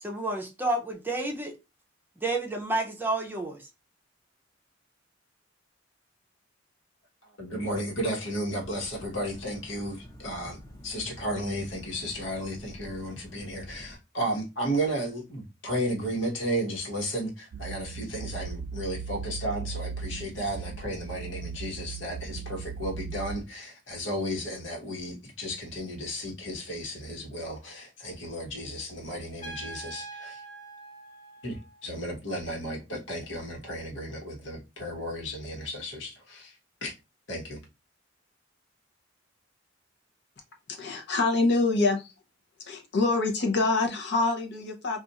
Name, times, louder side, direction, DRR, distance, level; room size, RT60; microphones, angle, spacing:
voice 1, 0.0-1.5 2.2-3.7, right 2 dB, 10° right, 0.6 m, -30 dB
voice 2, 7.4-30.4 31.4-36.9 37.3-37.6, equal, 80° left, 1.2 m, -34 dB
sound 1, 8.6-14.0, equal, 15° left, 0.9 m, -48 dB
sound 2, 17.5-23.4, right 5 dB, 65° right, 0.4 m, -38 dB
Trumpet, 29.4-32.1, right 2 dB, 45° left, 1.0 m, -44 dB
voice 3, 40.7-42.1 42.6-45.0, left 3 dB, 60° left, 0.7 m, -25 dB
2.4 x 2.4 x 4.0 m
head